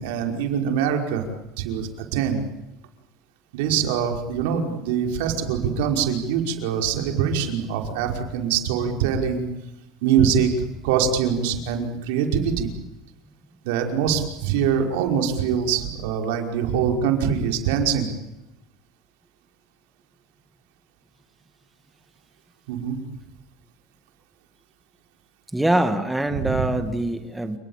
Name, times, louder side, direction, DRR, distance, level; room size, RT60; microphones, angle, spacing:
voice 1, 0.0-1.3 1.6-2.4 3.5-9.5 10.0-10.5 10.8-12.7 13.6-18.1 22.7-23.0 26.3-26.6, right 7 dB, 85° right, 4 dB, 5.3 m, -23 dB
voice 2, 25.5-27.6, right 1 dB, 5° right, 8 dB, 1.7 m, -23 dB
30.0 x 19.5 x 8.9 m, 0.95 s
cardioid pair, 145°, 0 cm